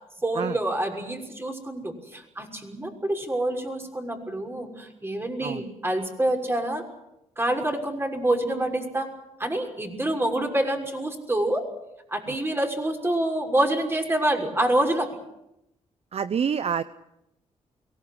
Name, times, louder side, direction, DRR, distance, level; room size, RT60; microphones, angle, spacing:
voice 1, 0.2-6.8 7.4-9.1 9.4-11.6 12.1-15.1, right 1 dB, 20° right, 3 dB, 6.1 m, -27 dB
voice 2, 16.1-16.8, right 7 dB, 55° right, 14 dB, 0.8 m, -26 dB
23.5 x 17.5 x 9.8 m, 0.85 s
cardioid pair, 70°, 13 cm